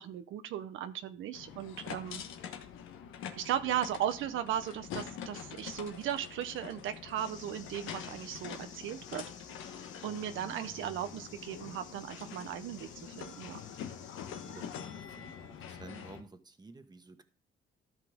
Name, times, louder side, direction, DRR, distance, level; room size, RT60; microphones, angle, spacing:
voice 1, 0.0-2.2 3.4-9.2 10.0-13.6, right 10 dB, 80° right, 9 dB, 0.7 m, -37 dB
sound 1, 1.3-16.2, left 8 dB, 90° left, 1.1 m, -45 dB
sound 2, 7.2-14.8, left 5 dB, 40° left, 2.8 m, -54 dB
voice 2, 14.4-17.2, right 3 dB, 20° right, 8 dB, 1.2 m, -52 dB
13.5 x 5.9 x 3.6 m, 0.36 s
cardioid pair, 90°, 20 cm